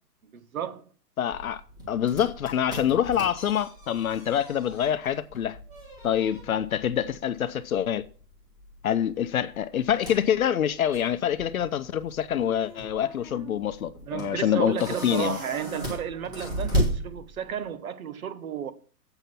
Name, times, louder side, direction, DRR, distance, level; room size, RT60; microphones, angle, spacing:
voice 1, 0.3-0.9 14.0-18.7, right 9 dB, 55° right, 1.1 m, -33 dB
voice 2, 1.2-1.6 1.9-5.6 6.0-8.0 8.8-14.7 15.0-15.4, left 9 dB, 60° left, 0.7 m, -26 dB
sound 1, 1.3-17.7, right 1 dB, 10° right, 1.7 m, -36 dB
8.0 x 6.9 x 5.8 m
hypercardioid pair, 165°, 49 cm